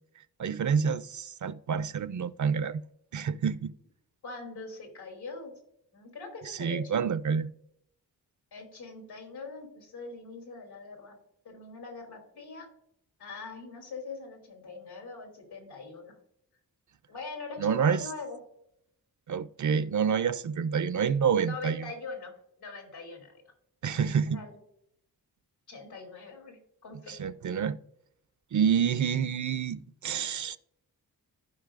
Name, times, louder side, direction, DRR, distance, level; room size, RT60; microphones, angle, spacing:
voice 1, 0.4-2.8 3.1-3.7 6.6-7.5 17.6-18.0 19.3-21.9 23.8-24.4 27.1-27.8 28.5-30.6, right 7 dB, 50° right, 0.5 m, -28 dB
voice 2, 4.2-5.5 5.9-7.1 8.5-11.1 11.4-12.7 13.2-16.1 17.1-18.4 21.4-22.3 22.6-23.4 23.9-24.6 25.7-27.2, left 4 dB, 90° left, 2.8 m, -42 dB
15.0 x 5.2 x 2.5 m
cardioid pair, 65°, 38 cm